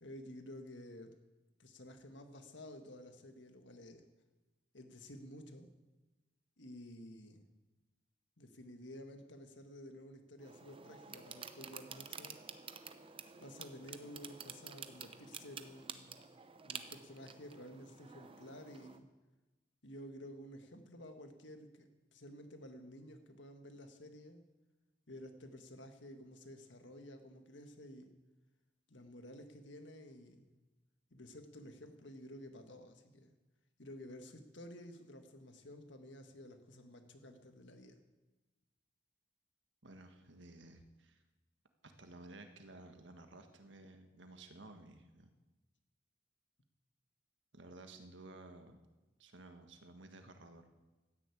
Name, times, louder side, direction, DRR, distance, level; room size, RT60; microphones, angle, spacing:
voice 1, 0.0-1.2 1.6-4.0 4.7-5.7 6.6-7.5 8.4-12.4 13.4-16.2 16.6-19.1 19.8-24.4 25.1-28.1 28.9-30.5 31.1-33.3 33.8-38.0, left 1 dB, 75° left, 6 dB, 1.7 m, -52 dB
sound 1, 10.4-19.0, right 6 dB, 30° right, 0.7 m, -50 dB
voice 2, 39.8-41.2 41.8-45.3 47.5-48.8 49.2-50.6, right 2 dB, 75° right, 6 dB, 1.6 m, -55 dB
13.0 x 10.5 x 8.5 m, 1.1 s
head